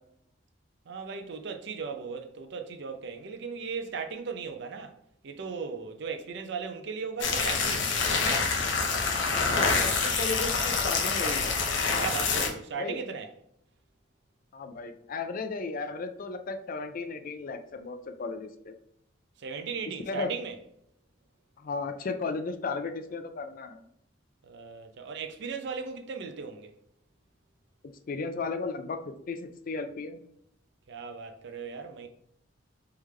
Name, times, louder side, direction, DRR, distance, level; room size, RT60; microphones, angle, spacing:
voice 1, 0.9-5.0 5.2-8.1 11.9-13.3 19.4-20.6 24.4-26.7 30.9-32.1, right 5 dB, 65° right, 0.6 m, -37 dB
sound 1, 7.2-12.5, left 4 dB, 75° left, 0.8 m, -26 dB
voice 2, 9.8-11.6 12.4-13.0 14.5-18.8 20.1-20.3 21.6-23.8 28.1-30.2, left 4 dB, 50° left, 0.4 m, -35 dB
3.6 x 3.3 x 3.2 m
head